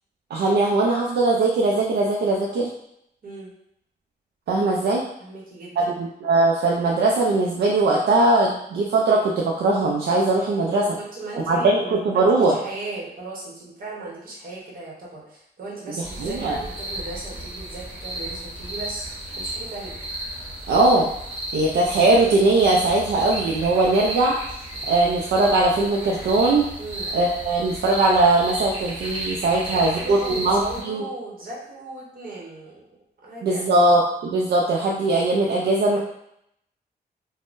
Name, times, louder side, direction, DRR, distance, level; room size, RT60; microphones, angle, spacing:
voice 1, 0.3-2.7 4.5-5.0 5.9-11.0 11.4-12.6 16.2-16.6 20.7-21.1 21.5-24.4 24.9-26.7 27.1-31.0 33.4-36.0, right 2 dB, 80° right, -2 dB, 0.4 m, -20 dB
voice 2, 5.2-6.0 11.0-19.1 19.4-20.0 26.8-27.1 29.5-32.9 33.2-33.6, right 2 dB, 55° right, -4 dB, 1.0 m, -37 dB
sound 1, 16.0-30.8, right 1 dB, 40° right, 1.3 m, -33 dB
3.5 x 2.1 x 2.5 m, 0.75 s
wide cardioid pair, 150°, 17 cm